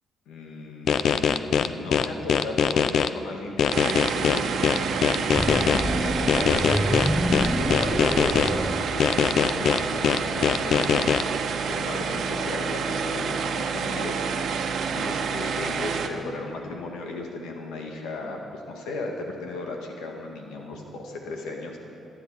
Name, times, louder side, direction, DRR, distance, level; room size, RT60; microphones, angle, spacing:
voice 1, 0.3-21.8, left 2 dB, 85° left, 1 dB, 1.9 m, -36 dB
sound 1, 0.9-3.1 3.6-5.8 6.3-8.5 9.0-11.2, left 7 dB, 65° left, 0.6 m, -22 dB
sound 2, 3.7-16.1, right 6 dB, 65° right, 1.1 m, -28 dB
sound 3, 5.3-9.6, equal, 5° left, 0.9 m, -28 dB
15.5 x 10.0 x 8.3 m, 2.8 s
cardioid pair, 90°, 0 cm